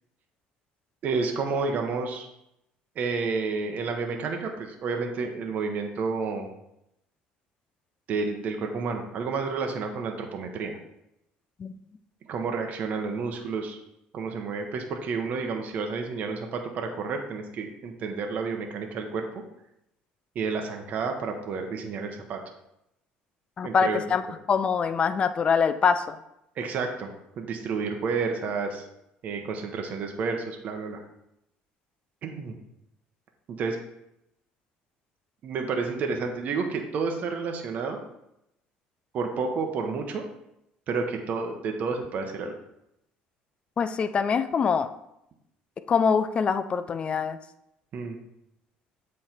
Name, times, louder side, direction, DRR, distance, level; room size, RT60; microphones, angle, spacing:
voice 1, 1.0-2.3 3.0-6.5 8.1-10.8 12.2-13.8 14.1-19.2 20.3-22.4 23.6-24.0 26.6-27.1 27.4-28.8 29.2-31.0 32.2-32.5 33.5-33.8 35.4-38.0 39.1-40.2 40.9-42.5 47.9-48.2, right 4 dB, 50° right, 3 dB, 0.8 m, -30 dB
voice 2, 23.6-24.2 24.5-26.2 43.8-44.9 45.9-47.4, left 6 dB, 35° left, 11 dB, 0.4 m, -24 dB
7.8 x 3.2 x 4.3 m, 0.83 s
cardioid pair, 105°, 3 cm